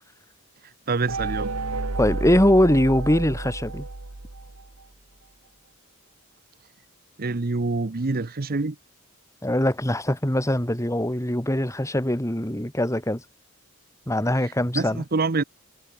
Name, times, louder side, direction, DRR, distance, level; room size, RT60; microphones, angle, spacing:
voice 1, 0.6-1.5 7.2-8.8 14.7-15.4, right 3 dB, 45° right, 0.9 m, -26 dB
sound 1, 1.1-4.8, right 3 dB, 85° right, 1.6 m, -31 dB
voice 2, 2.0-3.9 9.4-13.2 14.1-15.0, left 1 dB, 15° left, 3.7 m, -22 dB
head